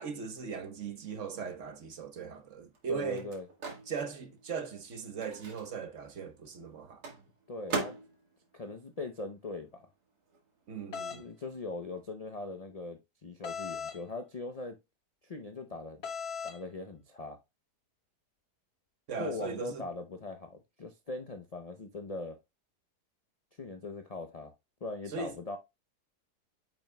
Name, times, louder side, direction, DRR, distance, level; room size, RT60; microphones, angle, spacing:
voice 1, 0.0-3.3 3.9-7.0 10.7-11.2 19.1-19.8 25.1-25.3, right 6 dB, 55° right, 1.2 m, -39 dB
Microwave oven, 1.9-9.9 10.2-12.1, right 3 dB, 70° right, 2.1 m, -43 dB
voice 2, 2.9-3.5 7.5-8.0 8.5-9.8 11.1-14.8 15.2-16.0 16.4-17.4 19.2-22.4 23.6-24.5 24.8-25.6, left 3 dB, 70° left, 0.3 m, -40 dB
sound 1, 10.9-11.2 13.4-14.0 16.0-16.6, left 6 dB, 55° left, 0.8 m, -38 dB
8.8 x 6.2 x 2.2 m
omnidirectional pair, 1.7 m